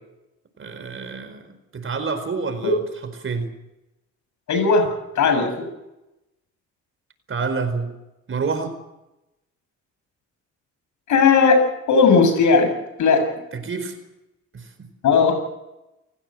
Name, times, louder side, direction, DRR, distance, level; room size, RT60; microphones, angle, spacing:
voice 1, 0.6-1.4 1.7-2.8 3.2-3.5 7.3-7.9 8.3-8.7 13.5-14.0 14.5-14.9, right 4 dB, 45° right, 9 dB, 4.6 m, -27 dB
voice 2, 4.5-4.9 5.2-5.7 11.1-12.7 13.0-13.3 15.0-15.3, left 5 dB, 75° left, 7 dB, 7.5 m, -17 dB
28.5 x 16.5 x 7.8 m, 0.95 s
cardioid pair, 90°, 30 cm